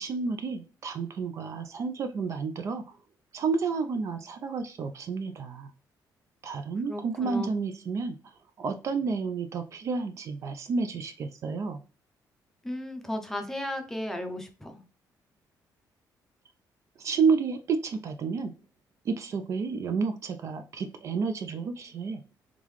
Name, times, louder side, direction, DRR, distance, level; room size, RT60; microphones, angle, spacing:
voice 1, 0.0-2.8 3.3-5.7 6.4-11.8 17.0-18.5 19.0-22.2, right 5 dB, 45° right, 8 dB, 0.4 m, -30 dB
voice 2, 6.9-7.5 12.6-14.8, left 1 dB, 5° left, 4 dB, 0.6 m, -35 dB
3.7 x 3.6 x 3.1 m, 0.35 s
cardioid pair, 175°, 7 cm